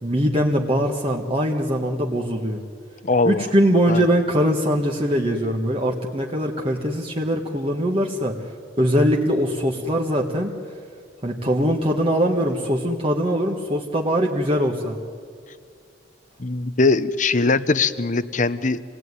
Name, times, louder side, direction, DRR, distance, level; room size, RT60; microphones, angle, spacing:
voice 1, 0.0-2.6 3.2-10.5 11.2-15.0, equal, 30° right, 0 dB, 1.5 m, -22 dB
voice 2, 3.0-3.4 3.9-4.0 16.4-18.8, left 3 dB, 45° left, 15 dB, 0.9 m, -21 dB
27.0 x 18.5 x 9.7 m, 2.2 s
head